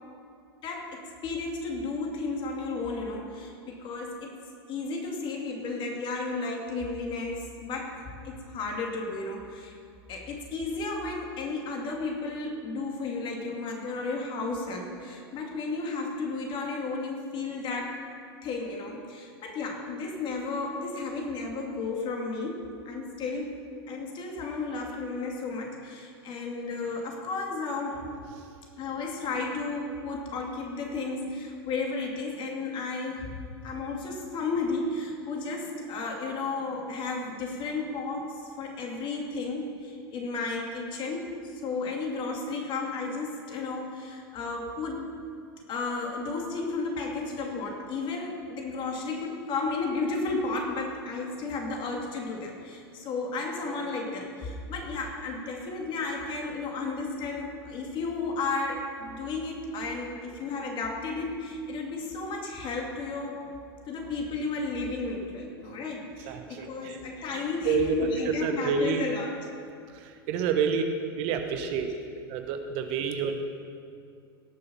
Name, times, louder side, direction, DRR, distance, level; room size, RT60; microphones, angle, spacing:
voice 1, 0.6-4.3 4.7-9.8 10.1-18.0 18.4-23.6 23.9-28.1 28.8-33.4 33.6-45.1 45.7-63.4 63.9-69.3 70.8-70.9 71.6-71.7 72.0-72.1, left 3 dB, 40° left, 1 dB, 2.6 m, -33 dB
voice 2, 66.3-67.0 67.6-69.1 69.9-70.8 71.2-71.9 72.3-73.4, right 6 dB, 50° right, 6 dB, 1.2 m, -28 dB
17.5 x 6.9 x 5.6 m, 2.4 s
hypercardioid pair, 95°, 13 cm